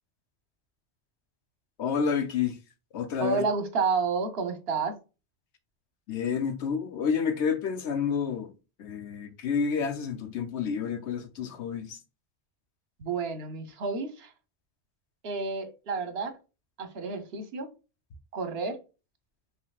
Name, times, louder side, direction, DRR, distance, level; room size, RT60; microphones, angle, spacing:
voice 1, 1.8-2.6 2.9-3.4 6.1-8.5 8.8-12.0, left 6 dB, 80° left, 1.0 m, -29 dB
voice 2, 3.2-4.9 13.0-14.3 15.2-16.3 16.8-17.7 18.3-18.8, right 4 dB, 65° right, 1.1 m, -30 dB
5.6 x 3.2 x 2.3 m
omnidirectional pair, 1.1 m